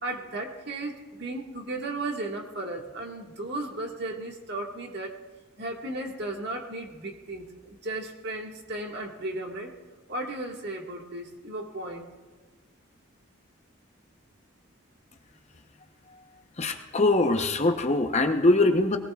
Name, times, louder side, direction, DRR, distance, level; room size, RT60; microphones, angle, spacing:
voice 1, 0.0-5.2 5.6-9.7 10.1-12.1, right 2 dB, 55° right, 1 dB, 1.7 m, -35 dB
voice 2, 16.6-19.0, left 2 dB, 35° left, 5 dB, 0.9 m, -22 dB
21.0 x 18.0 x 2.4 m, 1.4 s
head